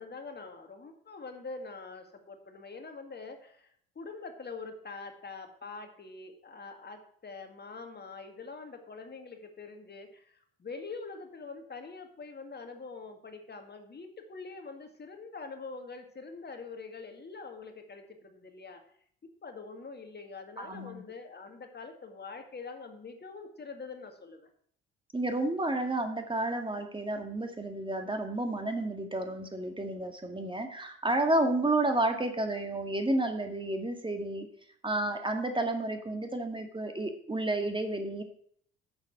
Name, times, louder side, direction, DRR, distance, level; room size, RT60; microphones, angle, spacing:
voice 1, 0.0-18.8 19.4-24.5, left 4 dB, 30° left, 5 dB, 2.1 m, -44 dB
voice 2, 20.6-21.0 25.1-34.5 34.8-38.2, right 2 dB, 15° right, 5 dB, 2.1 m, -31 dB
11.0 x 7.2 x 6.0 m, 0.63 s
hypercardioid pair, 55°, 32 cm